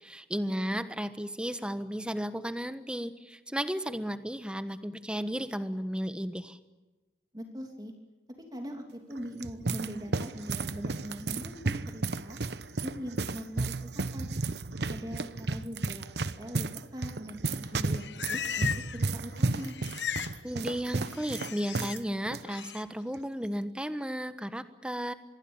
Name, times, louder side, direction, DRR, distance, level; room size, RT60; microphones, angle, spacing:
voice 1, 0.0-6.6 20.4-25.1, equal, 5° right, 11 dB, 1.2 m, -34 dB
voice 2, 7.3-7.9 8.5-12.4 12.8-14.3 14.9-16.1 16.4-19.8, equal, 20° right, 3 dB, 3.0 m, -41 dB
sound 1, 9.1-22.0 22.3-22.4 23.1-23.4, right 3 dB, 75° right, 1.0 m, -33 dB
Livestock farm animals working animals, 17.7-19.1 19.3-20.4 20.7-22.0 22.4-22.8, left 8 dB, 85° left, 1.2 m, -37 dB
26.0 x 22.0 x 7.2 m, 1.2 s
head